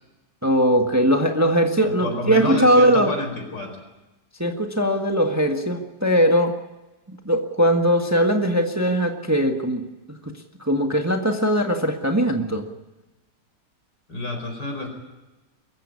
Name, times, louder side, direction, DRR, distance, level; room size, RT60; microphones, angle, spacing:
voice 1, 0.4-3.1 4.4-6.6 7.1-9.9 10.2-10.3 10.6-12.7, equal, 10° right, 4 dB, 1.5 m, -20 dB
voice 2, 1.8-3.8 14.1-14.9, left 2 dB, 75° left, 5 dB, 5.3 m, -29 dB
23.0 x 15.5 x 9.7 m, 1.1 s
omnidirectional pair, 1.9 m